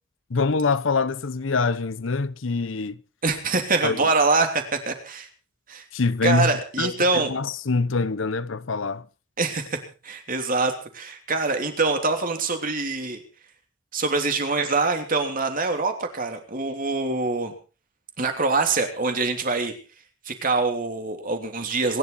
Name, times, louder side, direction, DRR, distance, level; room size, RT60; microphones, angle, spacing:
voice 1, 0.3-3.0 3.8-4.0 5.9-6.5 6.8-6.9 7.3-9.0, left 4 dB, 65° left, 0.7 m, -24 dB
voice 2, 3.2-5.3 5.7-5.8 6.2-7.3 9.4-9.8 10.0-13.2 13.9-17.5 18.2-19.7 20.2-22.0, right 3 dB, 40° right, 3.2 m, -24 dB
26.5 x 11.5 x 4.2 m
head